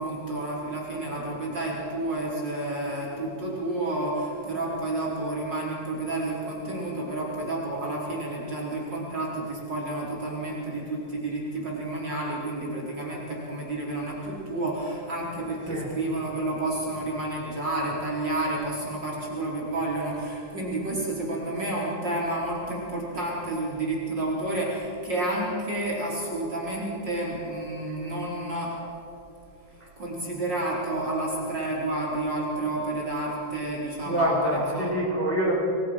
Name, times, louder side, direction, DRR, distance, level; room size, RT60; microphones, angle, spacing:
voice 1, 0.0-28.8 30.0-34.9, right 2 dB, 30° right, -4 dB, 5.3 m, -30 dB
voice 2, 34.0-35.5, equal, 5° left, -3 dB, 4.8 m, -25 dB
29.5 x 21.5 x 6.3 m, 2.9 s
omnidirectional pair, 4.0 m